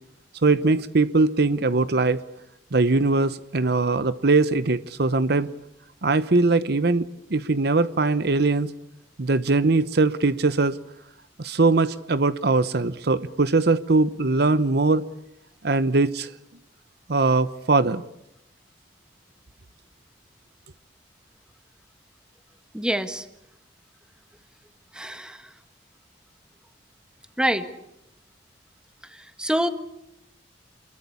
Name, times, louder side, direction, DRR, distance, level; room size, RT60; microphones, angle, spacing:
voice 1, 0.4-2.2 2.7-5.5 6.0-8.7 9.2-10.8 11.4-15.1 15.6-16.3 17.1-18.0, right 3 dB, 65° right, 0.9 m, -21 dB
voice 2, 22.7-23.2 24.9-25.4 27.4-27.7 29.4-29.7, equal, 5° right, 1.7 m, -25 dB
28.5 x 22.0 x 8.6 m
head